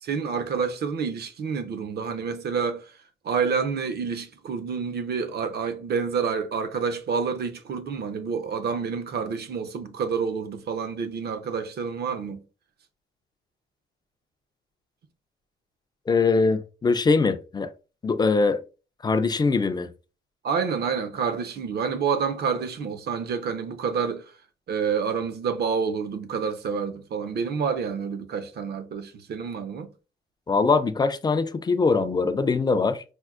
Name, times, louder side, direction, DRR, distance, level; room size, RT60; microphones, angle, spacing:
voice 1, 0.0-2.9 3.2-12.4 20.4-24.2 24.7-29.9, right 6 dB, 55° right, 0.6 m, -28 dB
voice 2, 16.1-17.7 18.0-18.6 19.0-19.9 30.5-33.0, left 4 dB, 20° left, 0.3 m, -22 dB
4.4 x 2.1 x 2.3 m
cardioid pair, 90°, 20 cm